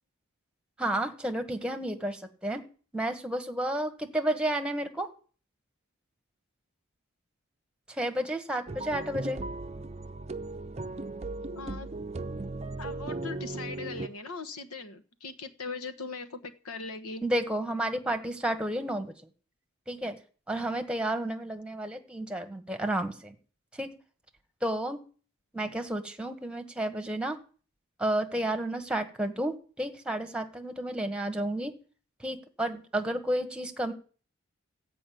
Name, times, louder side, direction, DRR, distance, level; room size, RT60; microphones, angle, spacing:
voice 1, 0.8-2.6 2.9-5.1 7.9-9.4 17.2-19.1 19.9-20.2 20.5-23.3 23.8-23.9 24.6-25.0 25.5-27.4 28.0-31.7 32.2-33.9, right 1 dB, 5° right, 8 dB, 1.3 m, -31 dB
sound 1, 8.7-14.1, right 2 dB, 30° right, 0.6 m, -37 dB
voice 2, 11.5-11.9 12.8-17.2 25.6-25.7, left 4 dB, 85° left, 10 dB, 1.4 m, -40 dB
14.0 x 5.4 x 9.2 m, 0.41 s
head